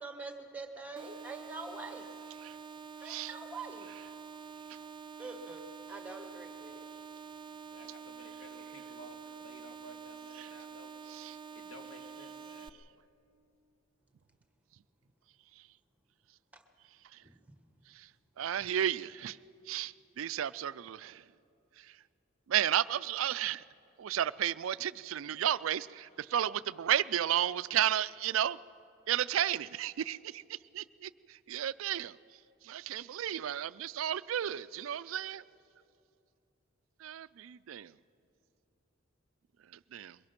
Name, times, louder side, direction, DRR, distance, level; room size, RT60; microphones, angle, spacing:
voice 1, 0.0-2.0 3.0-3.9 5.2-6.8 16.5-16.6, right 3 dB, 5° right, 5 dB, 1.4 m, -45 dB
sound 1, 1.0-12.7, right 6 dB, 25° right, 0.5 m, -47 dB
voice 2, 3.0-3.3 10.4-10.5 11.1-11.4 17.1-17.2 17.9-18.1 18.4-19.4 19.7-21.2 21.8-22.0 22.5-23.6 24.0-28.6 29.1-32.2 32.6-35.4 37.0-37.9 39.7-40.2, right 10 dB, 80° right, 17 dB, 0.4 m, -33 dB
voice 3, 7.7-10.9 11.5-12.7, equal, 85° left, 4 dB, 2.1 m, -54 dB
22.5 x 21.5 x 5.9 m, 2.7 s
head